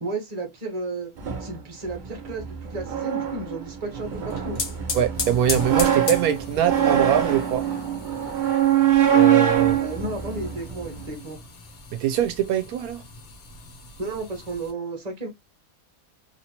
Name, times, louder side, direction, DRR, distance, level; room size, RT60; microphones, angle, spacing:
voice 1, 0.0-1.1 1.4-4.6 9.5-11.4 14.0-15.3, right 2 dB, 30° right, 1.1 m, -33 dB
sound 1, 1.2-11.1, right 9 dB, 55° right, 0.5 m, -24 dB
sound 2, 4.1-14.7, left 4 dB, 60° left, 1.0 m, -37 dB
voice 2, 4.9-7.6 9.1-9.8 12.0-13.0, right 10 dB, 80° right, 1.0 m, -23 dB
3.1 x 2.8 x 2.8 m
omnidirectional pair, 1.5 m